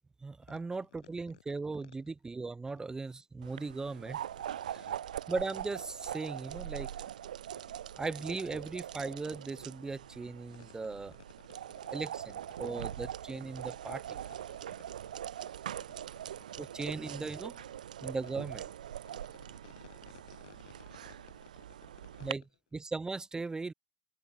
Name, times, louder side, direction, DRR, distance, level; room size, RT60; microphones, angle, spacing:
voice 1, 0.2-4.2 4.7-4.8 5.3-6.9 8.0-11.1 11.9-14.2 16.6-17.6 18.0-18.7 22.2-22.4 22.7-23.7, right 3 dB, 15° right, 3.4 m, -38 dB
sound 1, 3.4-22.3, right 10 dB, 75° right, 5.2 m, -42 dB
voice 2, 19.3-21.4 22.0-22.3, left 15 dB, 65° left, 4.6 m, -57 dB
figure-of-eight pair, 75°, 4 cm